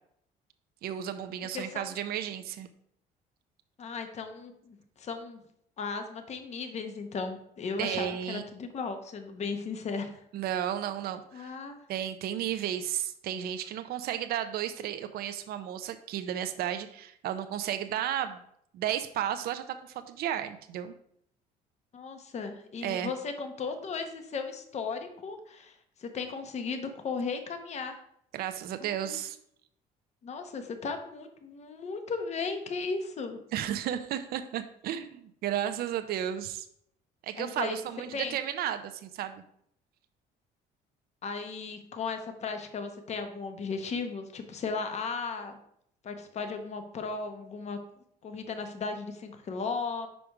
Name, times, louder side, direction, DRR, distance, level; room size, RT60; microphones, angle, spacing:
voice 1, 0.8-2.7 7.8-8.4 10.3-11.6 11.9-18.4 18.7-20.9 22.8-23.1 28.3-29.4 33.5-36.7 37.2-39.4, right 10 dB, 65° right, 9 dB, 0.5 m, -33 dB
voice 2, 1.5-1.9 3.8-5.4 5.8-10.2 11.3-11.8 21.9-28.0 28.8-29.2 30.2-33.4 37.4-37.8 38.1-38.4 41.2-45.6 46.0-47.8 48.2-50.1, left 4 dB, 40° left, 7 dB, 0.9 m, -36 dB
5.1 x 5.1 x 4.5 m, 0.70 s
cardioid pair, 110°, 17 cm